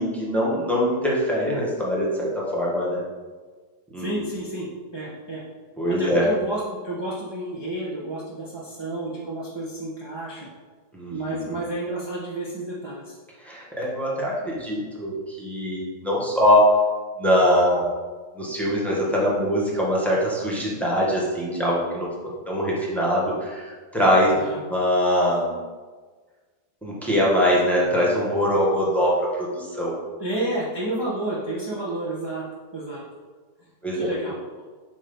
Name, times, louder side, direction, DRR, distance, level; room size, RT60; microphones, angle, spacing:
voice 1, 0.0-3.0 3.9-4.1 5.8-6.3 10.9-11.6 13.4-16.7 17.2-17.9 18.3-22.1 22.5-24.3 24.7-25.6 26.8-29.9 33.8-34.1, equal, ahead, -5 dB, 1.2 m, -22 dB
voice 2, 4.0-5.4 5.9-10.5 11.1-13.1 24.3-24.6 30.2-32.4 32.7-33.0 33.9-34.6, right 1 dB, 20° right, -7 dB, 0.8 m, -31 dB
7.9 x 3.1 x 5.3 m, 1.4 s
omnidirectional pair, 1.9 m